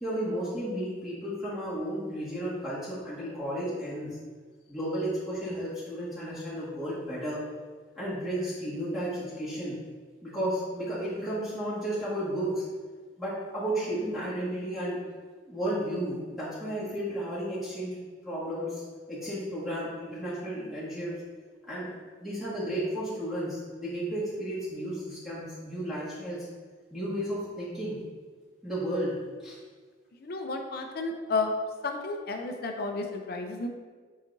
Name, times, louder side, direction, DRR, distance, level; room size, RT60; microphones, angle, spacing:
voice 1, 0.0-4.1 4.7-7.4 8.0-9.8 10.2-12.6 13.2-15.0 15.5-18.0 18.2-21.1 21.6-21.9 22.2-26.5 26.9-28.0 28.6-29.2 29.4-29.6, right 1 dB, ahead, -11 dB, 1.7 m, -33 dB
voice 2, 30.2-31.5 31.8-33.7, left 3 dB, 55° left, 4 dB, 0.5 m, -32 dB
8.1 x 4.9 x 2.6 m, 1.5 s
head